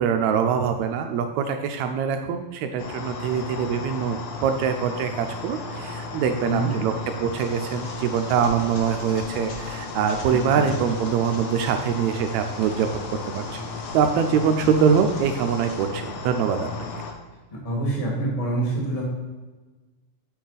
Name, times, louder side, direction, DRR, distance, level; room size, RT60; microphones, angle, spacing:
voice 1, 0.0-6.9 7.2-12.9 13.3-13.6 13.9-16.7, right 7 dB, 80° right, 6 dB, 1.7 m, -24 dB
sound 1, 2.8-17.1, left 3 dB, 80° left, 1.2 m, -34 dB
sound 2, 7.3-15.9, left 2 dB, 60° left, 0.9 m, -44 dB
voice 2, 10.3-10.7 17.6-19.0, right 2 dB, 15° left, -4 dB, 1.4 m, -26 dB
8.4 x 6.2 x 4.0 m, 1.3 s
omnidirectional pair, 3.6 m